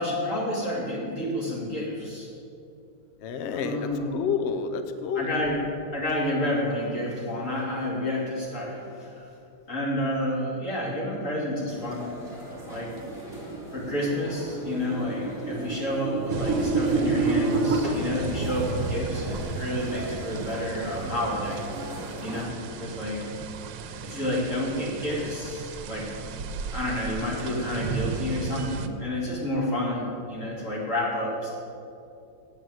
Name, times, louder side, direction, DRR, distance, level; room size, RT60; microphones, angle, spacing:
voice 1, 0.0-2.3 3.5-4.2 5.1-5.6 5.9-9.2 9.7-12.1 12.7-12.9 13.4-21.9 22.2-23.2 24.0-26.1 26.7-31.5, left 1 dB, 40° left, -5 dB, 3.1 m, -30 dB
voice 2, 3.2-5.3, left 6 dB, 75° left, 8 dB, 0.6 m, -29 dB
sound 1, 11.7-22.4, right 1 dB, 10° right, 2.8 m, -40 dB
sound 2, 13.1-17.8, right 4 dB, 50° right, 1.2 m, -28 dB
sound 3, 16.3-28.9, right 5 dB, 85° right, 1.4 m, -35 dB
8.7 x 8.0 x 7.8 m, 2.7 s
omnidirectional pair, 2.0 m